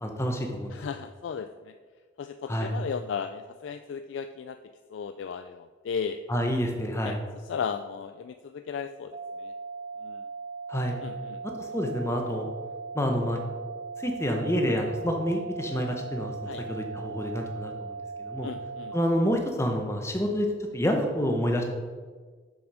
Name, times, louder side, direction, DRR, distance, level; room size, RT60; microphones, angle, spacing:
voice 1, 0.0-0.8 2.5-2.7 6.3-7.2 10.7-10.9 11.4-12.5 12.9-13.4 14.0-18.5 18.9-20.5 20.7-21.6, equal, 15° left, 3 dB, 0.9 m, -28 dB
voice 2, 0.7-1.7 2.2-4.6 4.9-6.2 7.0-7.2 7.4-9.5 10.0-10.2 11.0-11.4 16.5-16.6 18.4-18.9, left 6 dB, 70° left, 8 dB, 0.3 m, -35 dB
sound 1, 9.1-19.1, right 4 dB, 40° right, 0.6 m, -39 dB
7.1 x 6.2 x 4.8 m, 1.5 s
head